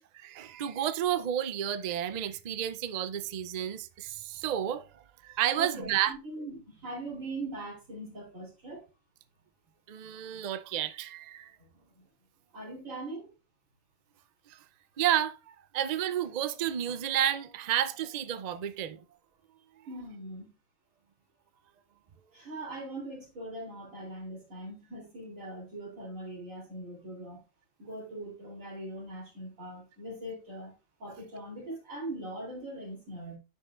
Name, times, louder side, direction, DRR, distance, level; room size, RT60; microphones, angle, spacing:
voice 1, 0.0-4.9 5.2-6.1 9.9-11.5 14.5-14.6 15.0-19.0, right 11 dB, 60° right, 0.4 m, -31 dB
voice 2, 5.6-8.8 11.9-12.0 12.5-13.3 19.9-20.5 22.3-27.4 27.8-30.7 31.0-33.4, right 1 dB, 80° right, 3.5 m, -41 dB
10.0 x 5.3 x 2.4 m
omnidirectional pair, 1.4 m